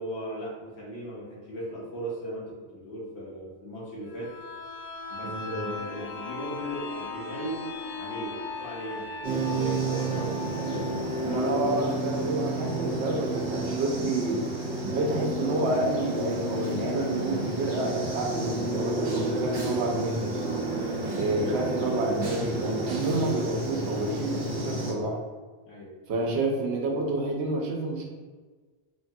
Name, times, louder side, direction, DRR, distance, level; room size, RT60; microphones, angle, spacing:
voice 1, 0.0-4.3 5.1-7.6 7.9-11.0 19.0-19.3 25.6-25.9, right 1 dB, 75° left, -5 dB, 1.2 m, -37 dB
sound 1, 4.0-13.6 14.0-14.1, left 4 dB, 55° left, 0.4 m, -39 dB
voice 2, 5.2-5.7 11.2-14.4 14.8-20.4 21.1-25.2 26.1-28.1, right 2 dB, 80° right, 1 dB, 0.9 m, -29 dB
sound 2, 9.2-24.9, right 1 dB, 55° right, 0.8 m, -30 dB
3.3 x 2.2 x 2.6 m, 1.4 s
omnidirectional pair, 1.1 m